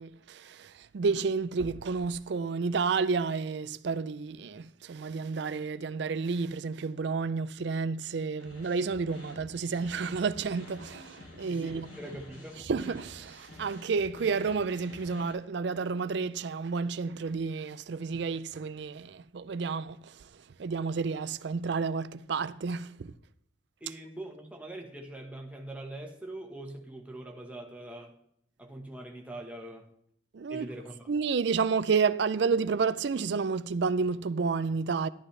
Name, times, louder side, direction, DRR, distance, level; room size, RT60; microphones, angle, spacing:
voice 1, 0.0-11.9 12.7-20.3 20.6-23.1 30.3-30.7 31.1-35.1, right 5 dB, 60° right, 0.4 m, -30 dB
sound 1, 8.4-15.3, left 1 dB, 75° left, 2.6 m, -48 dB
voice 2, 11.4-12.6 23.8-28.1 28.6-29.9 30.5-31.1, right 1 dB, 5° right, 1.2 m, -43 dB
11.5 x 11.5 x 3.3 m
head